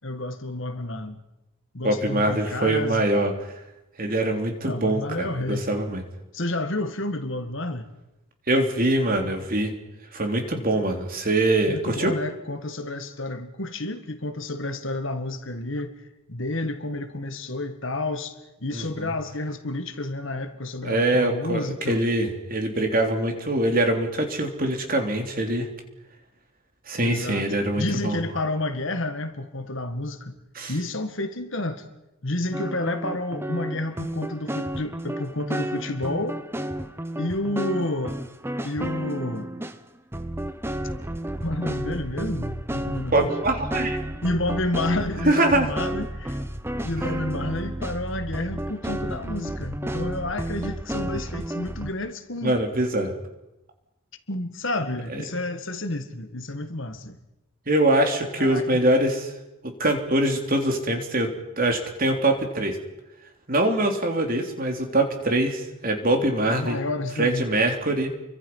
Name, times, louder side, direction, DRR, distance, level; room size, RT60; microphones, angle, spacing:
voice 1, 0.0-1.2 1.7-3.1 4.7-5.7 6.3-7.9 11.7-15.9 16.3-22.0 27.0-27.5 27.8-30.3 30.7-31.8 32.2-36.4 37.2-38.2 38.6-39.5 41.4-43.3 44.2-46.4 46.8-52.6 54.3-57.2 58.4-58.8 66.6-67.5, left 2 dB, 55° left, 1.8 m, -30 dB
voice 2, 1.8-3.5 4.0-6.0 8.5-9.7 10.1-12.1 18.7-19.1 20.8-25.7 26.9-28.2 30.6-30.7 43.1-44.0 45.2-45.7 47.1-47.2 52.4-53.1 55.1-55.4 57.7-59.3 59.6-61.3 61.6-62.8 63.5-66.8 67.2-68.1, right 1 dB, 40° right, 3.3 m, -23 dB
sound 1, 32.5-39.8 40.1-51.9, right 1 dB, 10° right, 0.9 m, -32 dB
30.0 x 24.0 x 5.6 m
head